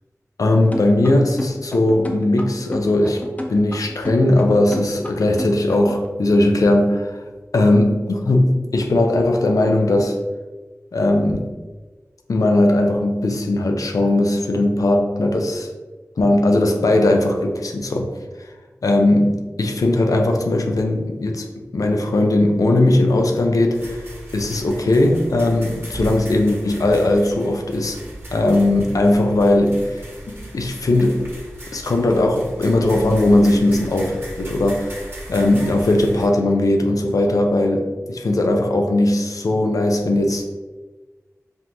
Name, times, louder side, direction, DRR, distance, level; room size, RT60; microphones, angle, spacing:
voice 1, 0.4-3.2 3.5-7.2 7.5-10.1 10.9-11.5 12.3-15.7 16.2-18.1 18.8-21.4 21.7-24.0 24.3-28.0 28.3-31.2 31.7-40.5, left 1 dB, 90° left, 3 dB, 0.5 m, -18 dB
sound 1, 0.7-6.1, left 1 dB, 25° left, 0.6 m, -31 dB
sound 2, 23.7-36.3, right 1 dB, 45° right, 1.3 m, -37 dB
5.4 x 2.5 x 2.9 m, 1.3 s
wide cardioid pair, 60°, 6 cm